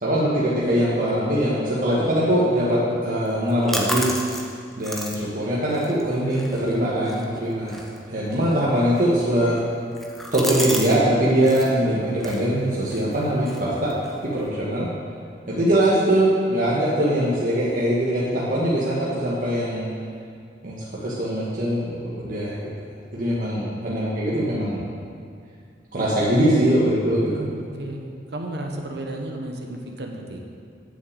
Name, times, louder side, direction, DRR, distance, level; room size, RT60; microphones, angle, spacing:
voice 1, 0.0-4.1 4.8-7.8 8.1-9.6 10.3-13.9 14.2-14.9 15.5-19.9 20.6-20.8 21.0-22.7 23.1-24.8 25.9-27.5, right 1 dB, 50° right, -7 dB, 1.5 m, -22 dB
sound 1, 3.3-11.0 11.2-11.7 12.2-14.5, equal, ahead, 1.0 m, -34 dB
voice 2, 27.3-30.4, right 1 dB, 65° right, 2 dB, 1.1 m, -33 dB
7.5 x 6.7 x 8.1 m, 2.2 s
head